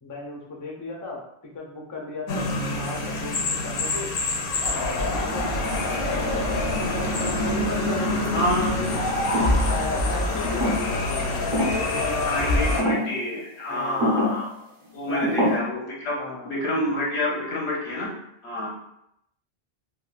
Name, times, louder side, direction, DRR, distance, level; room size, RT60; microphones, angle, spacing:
voice 1, 0.0-4.1 4.7-6.7 7.2-8.9 9.4-12.9 13.7-14.2 15.1-15.5 16.1-16.5, left 3 dB, 35° left, -1 dB, 0.3 m, -35 dB
sound 1, 2.3-12.8, left 2 dB, 65° left, 0.7 m, -26 dB
Bowed string instrument, 5.1-10.0, right 3 dB, 70° right, 0.8 m, -35 dB
voice 2, 8.3-8.7 12.2-14.5 14.9-18.1 18.4-18.7, left 1 dB, 85° left, -2 dB, 1.1 m, -28 dB
sound 2, 9.3-9.7 10.4-11.1 11.5-11.9 12.8-13.1 14.0-14.5 15.2-15.6, left 1 dB, 25° right, 0.6 m, -25 dB
3.6 x 2.3 x 2.3 m, 0.77 s
omnidirectional pair, 1.1 m